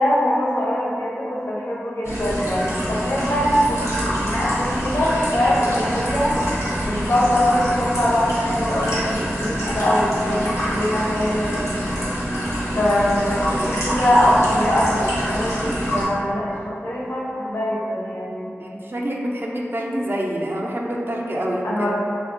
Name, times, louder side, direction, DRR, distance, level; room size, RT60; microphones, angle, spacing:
voice 1, 0.0-6.3 6.8-11.6 12.7-18.5 21.6-21.9, left 1 dB, 60° left, -5 dB, 0.5 m, -22 dB
sound 1, 2.0-16.1, equal, 90° left, 0.8 m, -25 dB
voice 2, 18.6-21.9, equal, 45° right, -2 dB, 0.3 m, -27 dB
2.7 x 2.2 x 2.5 m, 2.6 s
wide cardioid pair, 40°, 5 cm